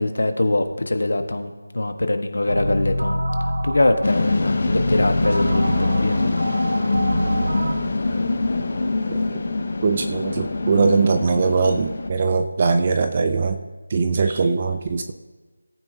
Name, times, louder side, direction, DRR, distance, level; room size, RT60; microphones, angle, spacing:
voice 1, 0.0-6.3, left 2 dB, 55° left, 7 dB, 1.2 m, -23 dB
sound 1, 2.5-7.7, right 1 dB, 70° right, 1.7 m, -25 dB
sound 2, 4.0-12.1, left 3 dB, 30° left, 0.7 m, -24 dB
voice 2, 9.8-13.6 13.9-15.1, right 4 dB, 15° right, 8 dB, 0.3 m, -21 dB
18.0 x 9.2 x 2.7 m, 1.3 s
figure-of-eight pair, 180°, 0 cm